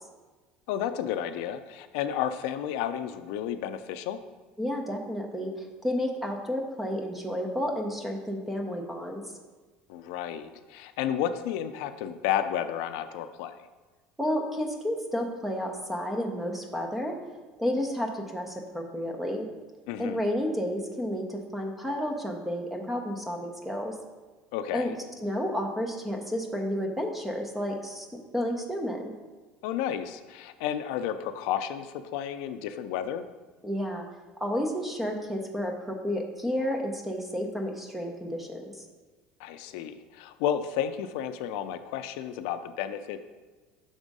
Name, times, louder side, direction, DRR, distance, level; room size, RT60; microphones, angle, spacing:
voice 1, 0.7-4.2 9.9-13.7 19.9-20.2 24.5-24.9 29.6-33.2 39.4-43.2, left 10 dB, 75° left, 10 dB, 0.4 m, -32 dB
voice 2, 4.6-9.2 14.2-17.2 17.6-19.5 20.0-24.0 24.7-24.9 25.2-28.1 28.3-29.1 33.6-34.0 34.4-38.8, equal, 5° right, 2 dB, 0.6 m, -31 dB
6.1 x 3.5 x 5.3 m, 1.3 s
cardioid pair, 175°, 3 cm